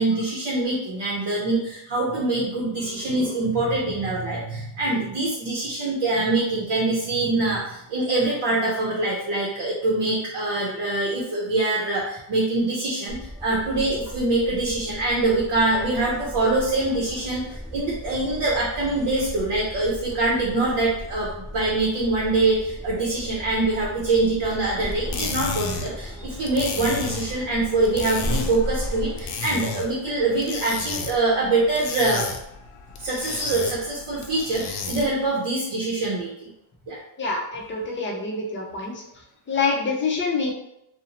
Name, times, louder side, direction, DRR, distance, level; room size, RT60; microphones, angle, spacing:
voice 1, 0.0-17.4 17.7-32.3 33.0-36.5 36.9-37.0, right 2 dB, 60° right, -4 dB, 0.7 m, -24 dB
sound 1, 13.1-29.3, left 1 dB, 5° right, 0.7 m, -36 dB
sound 2, 24.9-35.2, left 5 dB, 80° left, 0.6 m, -33 dB
voice 2, 37.2-39.0 39.5-40.5, left 4 dB, 25° left, -2 dB, 0.4 m, -26 dB
2.6 x 2.1 x 2.8 m, 0.81 s
cardioid pair, 135°, 50 cm